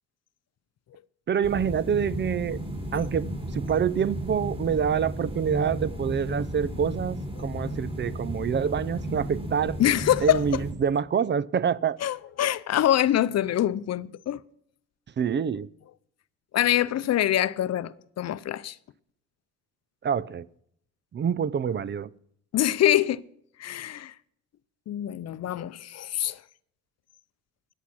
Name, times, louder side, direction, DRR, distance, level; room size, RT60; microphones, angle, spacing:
voice 1, 1.3-2.6 2.9-3.3 3.5-9.8 10.2-12.0 15.2-15.7 20.0-20.5 21.1-22.1, right 7 dB, 40° right, 0.5 m, -26 dB
sound 1, 1.4-10.7, equal, 20° right, 4.5 m, -34 dB
voice 2, 9.8-10.4 12.0-14.4 16.5-18.7 22.5-23.2 23.6-24.1 24.9-26.4, left 12 dB, 60° left, 0.6 m, -25 dB
14.5 x 10.0 x 6.1 m
cardioid pair, 90°, 30 cm